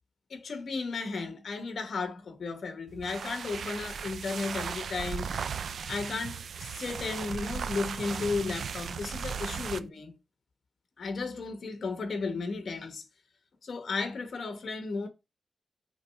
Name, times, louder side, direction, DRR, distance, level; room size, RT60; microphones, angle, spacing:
voice 1, 0.3-5.4 5.9-10.1 11.0-13.0 13.6-15.1, left 4 dB, 60° left, 1.2 m, -34 dB
sound 1, 2.9-9.9, right 6 dB, 80° right, 0.4 m, -37 dB
6.4 x 3.1 x 4.7 m
wide cardioid pair, 170°, 0 cm